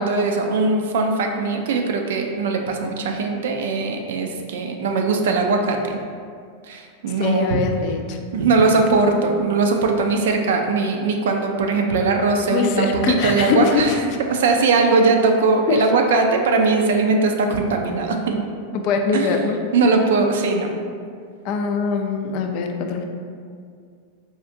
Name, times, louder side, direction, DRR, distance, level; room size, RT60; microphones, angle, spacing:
voice 1, 0.0-5.8 6.7-7.6 8.3-13.9 14.3-18.4 19.1-19.4 19.7-20.8, right 3 dB, 75° right, 3 dB, 0.4 m, -20 dB
voice 2, 7.2-8.2 12.5-13.9 15.7-15.9 18.7-19.6 21.4-23.0, left 5 dB, 50° left, 4 dB, 0.3 m, -22 dB
3.8 x 2.5 x 2.5 m, 2.2 s
hypercardioid pair, 115°, 0 cm